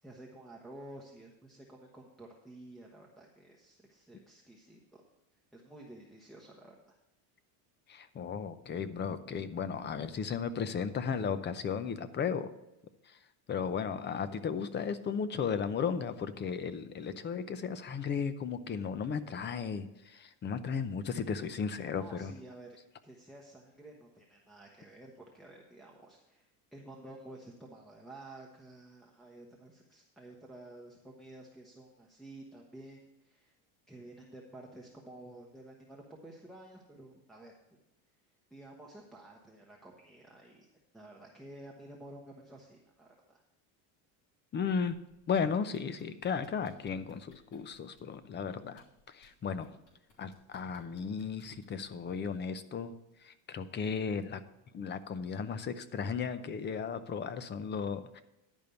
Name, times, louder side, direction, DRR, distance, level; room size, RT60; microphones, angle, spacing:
voice 1, 0.0-5.0 5.5-6.9 21.9-33.5 33.9-37.8 38.5-40.7 40.9-43.4, right 1 dB, ahead, -2 dB, 1.1 m, -52 dB
voice 2, 7.9-12.5 13.1-13.2 13.5-22.3 44.5-45.0 45.3-49.7 50.2-52.9 53.2-54.4 54.7-58.2, left 6 dB, 25° left, 13 dB, 0.6 m, -35 dB
sound 1, 44.9-45.4 45.7-48.2 48.7-49.3 49.6-52.1 53.1-53.2, left 3 dB, 75° left, 3.3 m, -65 dB
11.0 x 5.3 x 6.9 m, 0.91 s
cardioid pair, 130°, 44 cm